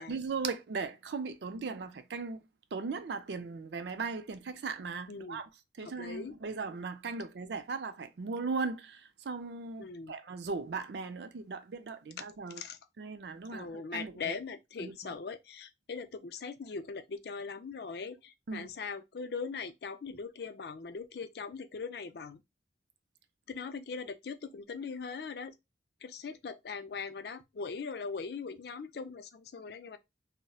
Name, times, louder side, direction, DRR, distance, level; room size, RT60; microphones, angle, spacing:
voice 1, 0.0-2.4 2.7-5.5 5.8-12.6 13.0-14.4 14.8-15.1 18.5-18.7, right 4 dB, 70° right, 0.4 m, -38 dB
voice 2, 5.1-5.4 5.8-6.4 9.8-10.1 12.6-12.8 13.5-22.4 23.5-25.5 26.0-30.0, left 5 dB, 60° left, 0.4 m, -40 dB
4.1 x 2.1 x 2.3 m
head